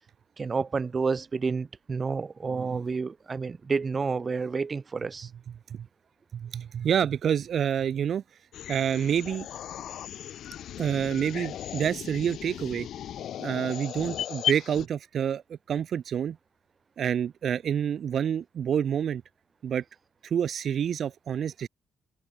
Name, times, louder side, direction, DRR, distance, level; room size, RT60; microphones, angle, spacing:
voice 1, 0.4-5.3, right 4 dB, 35° right, 1.9 m, -30 dB
voice 2, 2.5-2.8 5.7-5.9 6.3-8.2 8.7-9.5 10.8-12.9 13.4-16.4 17.0-19.2 19.6-19.8 20.2-21.7, right 8 dB, 60° right, 3.6 m, -28 dB
sound 1, 8.5-14.9, left 11 dB, 70° left, 4.3 m, -36 dB
open air
cardioid pair, 90°, 0 cm